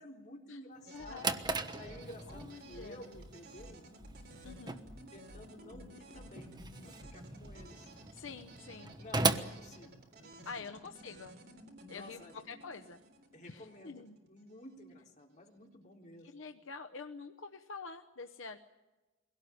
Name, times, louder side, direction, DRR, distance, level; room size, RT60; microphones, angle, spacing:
voice 1, 0.0-1.3 1.7-3.9 5.1-6.5 6.8-7.9 9.0-10.7 11.9-12.4 13.3-16.3, left 1 dB, 40° left, 0 dB, 3.8 m, -52 dB
Drawer open or close, 0.8-10.6, right 3 dB, 20° right, 1.1 m, -38 dB
voice 2, 0.9-1.4 2.3-3.1 4.4-4.8 8.1-9.0 10.4-11.3 11.9-13.0 13.4-14.2 16.2-18.6, left 4 dB, 80° left, 5 dB, 0.9 m, -47 dB
sound 1, 0.9-14.8, right 1 dB, 55° right, 3.7 m, -55 dB
sound 2, 1.0-1.1 1.4-1.6 1.8-2.0 2.3-2.4 2.7-2.8 3.1-3.3 3.6-3.7 4.0-4.6 4.8-5.0 5.3-5.4 5.7-5.8 6.1-6.3 6.6-6.7 7.0-7.1 7.4-7.6, equal, 40° right, 4.2 m, -52 dB
23.0 x 17.5 x 9.5 m, 1.1 s
head